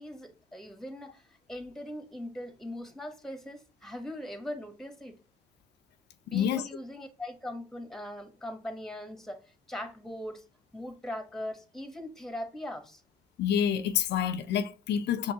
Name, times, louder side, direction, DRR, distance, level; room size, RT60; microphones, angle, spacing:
voice 1, 0.0-5.2 6.3-10.4 10.7-13.0, left 1 dB, ahead, 1.1 m, -40 dB
voice 2, 6.3-6.7 13.4-15.3, left 9 dB, 85° left, 0.5 m, -28 dB
5.3 x 3.0 x 2.8 m
cardioid pair, 65°, 17 cm